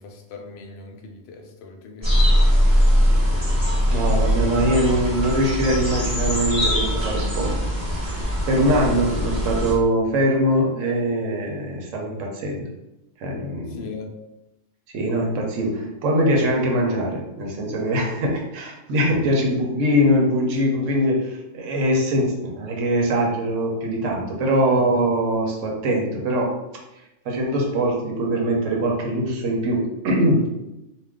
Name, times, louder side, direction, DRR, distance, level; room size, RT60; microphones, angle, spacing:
voice 1, 0.0-2.1 2.7-3.4 8.9-9.0 13.7-14.1 24.5-24.9, left 4 dB, 65° left, 2 dB, 0.8 m, -40 dB
sound 1, 2.0-9.7, equal, 20° right, 1.3 m, -21 dB
voice 2, 3.9-7.5 8.5-12.7 13.2-13.9 14.9-26.5 27.2-30.5, equal, 85° right, -1 dB, 1.1 m, -22 dB
2.4 x 2.4 x 3.5 m, 0.93 s
omnidirectional pair, 1.3 m